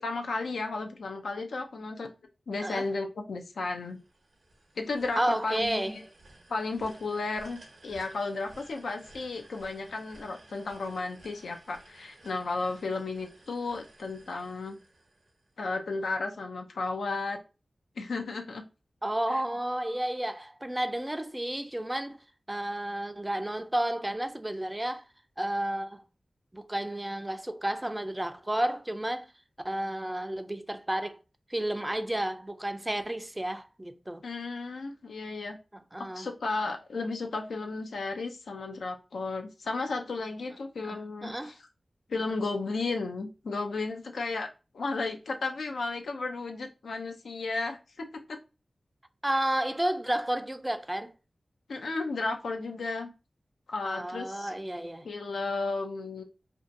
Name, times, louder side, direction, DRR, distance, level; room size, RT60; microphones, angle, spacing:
voice 1, 0.0-2.1 2.5-4.0 4.8-6.0 6.5-14.8 15.6-17.4 18.0-18.6 19.3-19.4 34.2-35.6 36.0-41.5 42.1-44.5 44.7-48.4 51.7-53.1 53.7-54.5 55.0-56.2, left 3 dB, 90° left, 0.3 m, -34 dB
sound 1, 3.6-15.7, right 1 dB, 80° right, 0.6 m, -56 dB
voice 2, 5.2-6.0 19.0-22.2 22.5-25.0 25.4-26.0 26.5-29.3 29.6-31.2 31.5-34.2 35.9-36.3 40.9-41.5 49.2-51.1 53.8-55.1, right 1 dB, 20° right, 0.3 m, -31 dB
2.5 x 2.2 x 2.5 m
cardioid pair, 40°, 0 cm